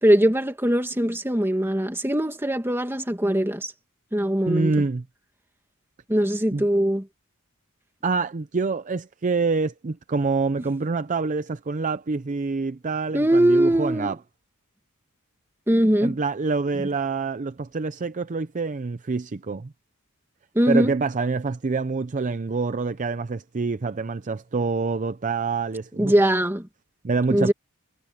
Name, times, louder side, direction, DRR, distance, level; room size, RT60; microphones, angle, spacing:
voice 1, 0.0-3.7 4.1-4.8 6.1-7.1 13.1-14.1 15.7-16.2 20.6-20.9 26.0-26.7 27.3-27.5, right 1 dB, 10° right, 2.1 m, -21 dB
voice 2, 4.5-5.0 6.5-6.7 8.0-14.2 16.0-19.7 20.7-26.1 27.0-27.5, right 4 dB, 35° right, 0.5 m, -26 dB
head